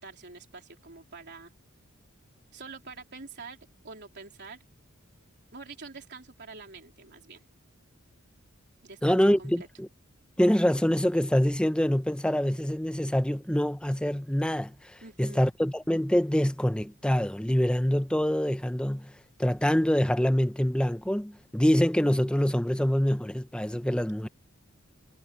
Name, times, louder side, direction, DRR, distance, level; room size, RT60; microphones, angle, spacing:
voice 1, 0.0-1.5 2.5-3.6 3.8-4.6 5.5-7.4 8.8-9.7 15.0-15.5, right 4 dB, 50° right, 3.6 m, -46 dB
voice 2, 9.0-9.9 10.4-19.1 19.4-24.3, equal, 5° left, 0.7 m, -25 dB
head